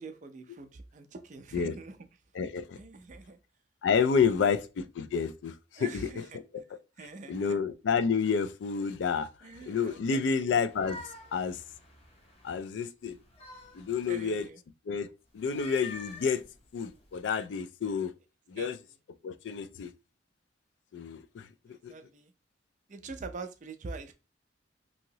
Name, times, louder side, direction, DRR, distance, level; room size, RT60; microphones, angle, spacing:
voice 1, 0.0-2.0 2.8-3.4 4.3-4.5 5.8-6.2 7.0-7.6 9.4-10.5 14.1-14.6 18.6-18.7 21.7-22.3 22.9-24.1, right 3 dB, 40° right, 0.4 m, -44 dB
voice 2, 2.3-2.8 3.8-6.6 7.3-9.3 9.7-11.0 11.3-11.6 12.4-13.2 13.7-14.5 14.9-16.4 16.7-18.1 18.5-18.8 19.2-19.9 20.9-21.5 21.8-21.9, left 6 dB, 75° left, 0.3 m, -29 dB
sound 1, 10.5-12.6 13.1-14.3 15.4-17.2, left 2 dB, 35° left, 0.7 m, -48 dB
2.9 x 2.7 x 2.7 m
head